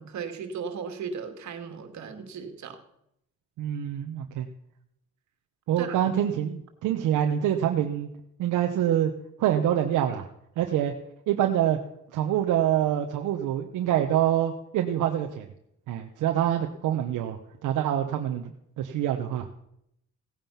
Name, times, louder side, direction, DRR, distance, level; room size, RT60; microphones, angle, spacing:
voice 1, 0.0-2.8 5.8-6.0, right 6 dB, 65° right, 6 dB, 2.4 m, -36 dB
voice 2, 3.6-4.5 5.7-8.1 8.4-9.1 9.4-10.2 10.6-10.9 11.3-11.8 12.1-15.5 15.9-19.7, right 11 dB, 85° right, 4 dB, 1.1 m, -26 dB
17.0 x 9.0 x 5.8 m, 0.76 s
cardioid pair, 90°, 30 cm